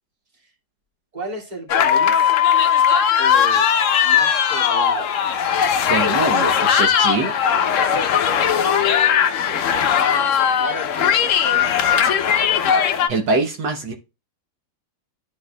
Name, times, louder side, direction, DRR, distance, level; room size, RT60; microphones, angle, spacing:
voice 1, 1.1-2.3 3.2-3.7 4.0-5.2 9.3-9.9 10.2-11.9, right 1 dB, 20° right, 2.3 m, -34 dB
sound 1, 1.7-13.1, left 8 dB, 65° left, 0.7 m, -18 dB
voice 2, 5.9-7.3 13.1-13.9, right 3 dB, 70° right, 1.7 m, -23 dB
12.5 x 4.7 x 2.3 m
omnidirectional pair, 2.1 m